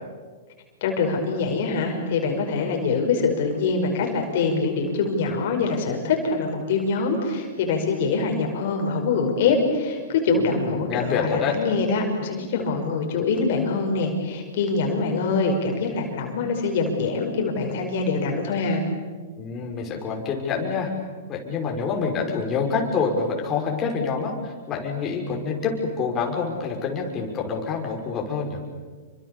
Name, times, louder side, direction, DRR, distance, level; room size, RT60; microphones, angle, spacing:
voice 1, 0.8-18.8, left 4 dB, 60° left, 3 dB, 5.2 m, -24 dB
voice 2, 10.4-11.5 19.4-20.9 21.3-28.6, left 5 dB, 30° left, 0 dB, 5.8 m, -27 dB
28.5 x 25.0 x 7.0 m, 1.5 s
hypercardioid pair, 115°, 0 cm